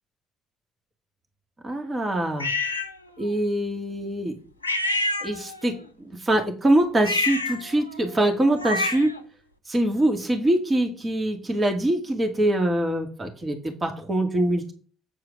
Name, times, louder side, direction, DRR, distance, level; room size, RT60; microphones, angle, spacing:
voice 1, 1.6-2.5 3.2-4.4 5.2-9.2 9.7-14.7, right 1 dB, 30° right, 4 dB, 2.3 m, -24 dB
sound 1, 2.4-2.9 4.6-5.7 7.0-9.2, left 2 dB, 90° left, 0.6 m, -27 dB
8.7 x 4.8 x 6.0 m, 0.40 s
figure-of-eight pair, 50°, 0 cm